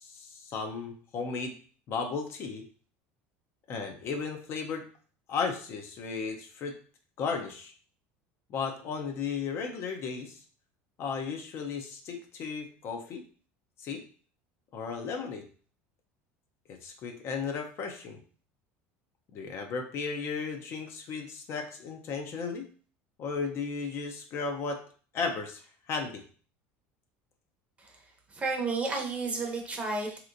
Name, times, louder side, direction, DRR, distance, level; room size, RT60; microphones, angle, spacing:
voice 1, 0.0-1.5 1.9-2.6 3.7-4.9 5.3-6.7 7.2-7.7 8.5-10.4 11.0-13.2 13.8-14.0 14.7-15.5 16.7-18.2 19.3-22.7 23.2-24.8 25.1-26.2, left 5 dB, 45° left, 4 dB, 0.6 m, -35 dB
voice 2, 28.3-30.2, right 3 dB, 20° right, 1 dB, 0.7 m, -32 dB
3.3 x 2.9 x 2.5 m, 0.43 s
supercardioid pair, 130°, 6 cm